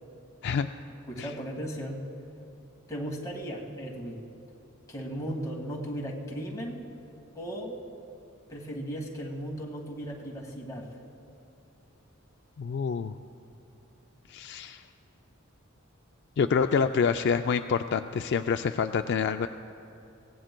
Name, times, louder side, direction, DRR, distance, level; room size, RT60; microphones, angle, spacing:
voice 1, 1.1-2.0 2.9-4.2 4.9-6.9 7.4-7.8 8.5-10.9, equal, 15° left, -2 dB, 1.7 m, -36 dB
voice 2, 12.6-13.1 14.3-14.8 16.4-19.5, left 6 dB, 55° left, 8 dB, 0.3 m, -27 dB
23.0 x 17.5 x 2.2 m, 2.7 s
head